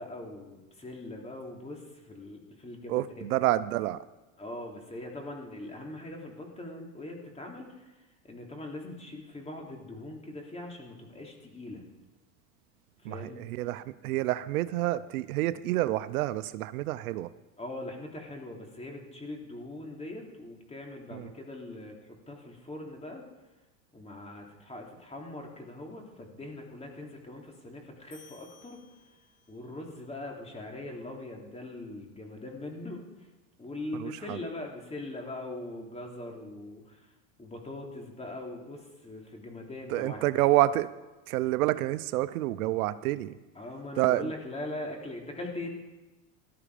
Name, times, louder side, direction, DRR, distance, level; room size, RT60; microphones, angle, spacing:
voice 1, 0.0-3.3 4.4-7.7 8.2-11.8 13.0-13.5 17.6-23.2 23.9-28.8 29.5-33.0 33.6-36.8 37.4-40.2 43.5-45.7, left 2 dB, 15° left, 1 dB, 3.3 m, -41 dB
voice 2, 2.9-4.0 13.0-17.3 21.1-21.3 33.9-34.4 39.9-40.9 41.3-43.4 44.0-44.3, right 16 dB, 90° right, 15 dB, 0.8 m, -28 dB
sound 1, 28.1-29.7, left 5 dB, 50° left, 5.9 m, -57 dB
17.5 x 12.5 x 5.0 m, 1.1 s
supercardioid pair, 115°, 42 cm